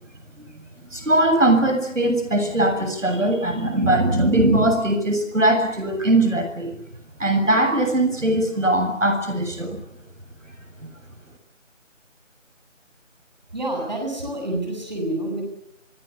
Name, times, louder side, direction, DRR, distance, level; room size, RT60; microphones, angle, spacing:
voice 1, 0.9-6.8 7.2-9.8, right 1 dB, 75° right, 7 dB, 7.5 m, -20 dB
voice 2, 13.5-15.4, right 1 dB, 35° right, 2 dB, 7.7 m, -28 dB
24.0 x 24.0 x 8.3 m, 0.74 s
figure-of-eight pair, 180°, 38 cm